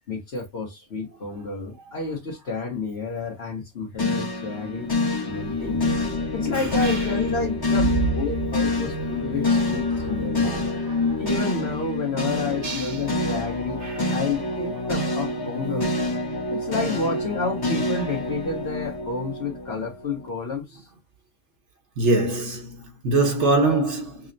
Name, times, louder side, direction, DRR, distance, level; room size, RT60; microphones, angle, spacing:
voice 1, 0.1-4.9 5.3-5.8 6.3-10.4 11.2-13.8 14.1-15.9 16.5-20.9, left 3 dB, 60° left, 1.3 m, -30 dB
sound 1, 4.0-20.3, left 2 dB, 20° left, 0.8 m, -26 dB
voice 2, 10.4-11.0 12.6-12.9 13.8-14.0 22.0-24.2, right 2 dB, 75° right, 1.3 m, -23 dB
6.1 x 2.1 x 2.6 m
omnidirectional pair, 1.2 m